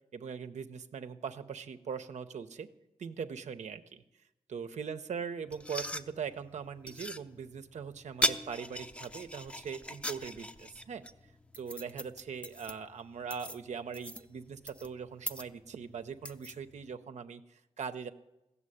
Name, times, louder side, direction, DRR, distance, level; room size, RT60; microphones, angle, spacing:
voice 1, 0.1-2.7 3.0-4.0 4.5-11.0 11.6-18.1, right 6 dB, 80° right, 8 dB, 0.7 m, -41 dB
sound 1, 5.5-16.9, left 1 dB, 10° left, 0.6 m, -40 dB
15.5 x 7.1 x 9.8 m, 0.94 s
wide cardioid pair, 90°, 12 cm